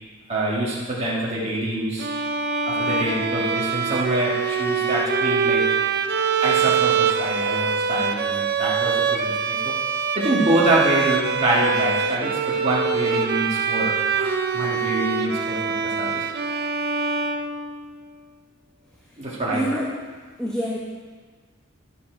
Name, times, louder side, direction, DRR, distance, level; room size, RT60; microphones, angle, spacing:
voice 1, 0.3-2.1 2.6-5.7 6.4-9.8 10.1-16.3 19.2-19.6, right 1 dB, 30° right, -7 dB, 1.6 m, -25 dB
Bowed string instrument, 2.0-18.1, right 6 dB, 50° right, 0.6 m, -24 dB
voice 2, 19.5-19.9 20.4-20.8, equal, 5° left, -5 dB, 1.1 m, -25 dB
11.0 x 7.5 x 4.4 m, 1.5 s
head